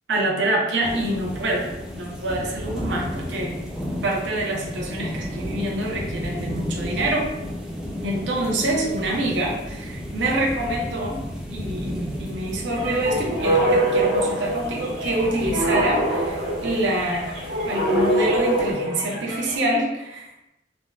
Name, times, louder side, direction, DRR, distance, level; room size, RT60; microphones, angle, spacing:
voice 1, 0.1-3.5 4.0-7.3 8.0-17.4 17.7-20.3, right 1 dB, 70° right, -2 dB, 0.6 m, -26 dB
sound 1, 0.8-18.7, equal, 5° right, 0.4 m, -33 dB
sound 2, 12.7-19.6, right 1 dB, 90° right, 1.1 m, -24 dB
3.4 x 2.1 x 2.2 m, 0.90 s
head